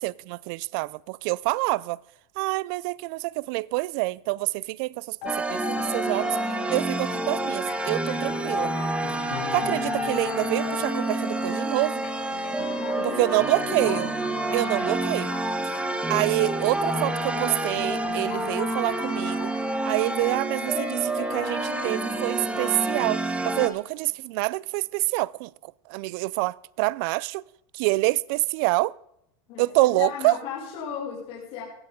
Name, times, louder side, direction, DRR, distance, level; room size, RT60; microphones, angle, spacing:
voice 1, 0.0-2.0 2.4-5.2 5.5-6.4 6.7-8.7 9.5-12.0 13.0-14.1 14.5-15.3 16.1-19.5 19.9-27.4 27.7-29.0 29.6-30.4, right 23 dB, 60° right, 0.5 m, -26 dB
sound 1, 5.2-24.2, left 8 dB, 70° left, 2.6 m, -38 dB
sound 2, 5.3-23.7, right 2 dB, 10° right, 1.3 m, -29 dB
voice 2, 12.8-13.3 13.5-14.1 29.5-29.6 30.0-31.6, left 7 dB, 50° left, 6.4 m, -34 dB
18.0 x 14.0 x 3.8 m
supercardioid pair, 125°, 14 cm